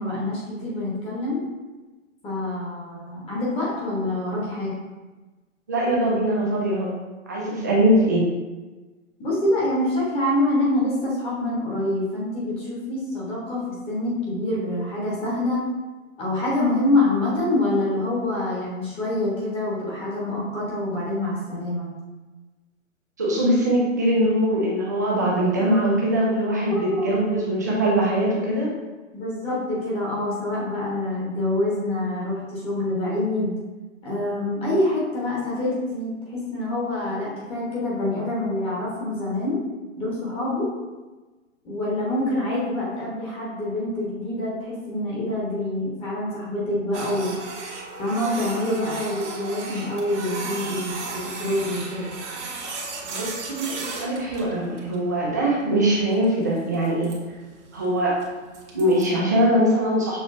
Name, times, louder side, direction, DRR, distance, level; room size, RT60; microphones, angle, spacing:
voice 1, 0.0-1.4 2.2-4.8 9.2-15.6 16.2-21.9 26.7-27.1 29.1-33.6 34.0-39.6 40.0-40.7 41.6-47.3 48.0-52.2, left 1 dB, 15° left, -6 dB, 1.1 m, -26 dB
voice 2, 5.7-6.9 7.3-8.2 23.2-28.7 53.1-57.1 57.7-58.2 58.7-60.2, right 1 dB, 15° right, -4 dB, 0.3 m, -22 dB
Printer, 46.9-59.0, right 3 dB, 60° right, 1.2 m, -36 dB
6.3 x 2.9 x 2.6 m, 1.2 s
hypercardioid pair, 135°, 39 cm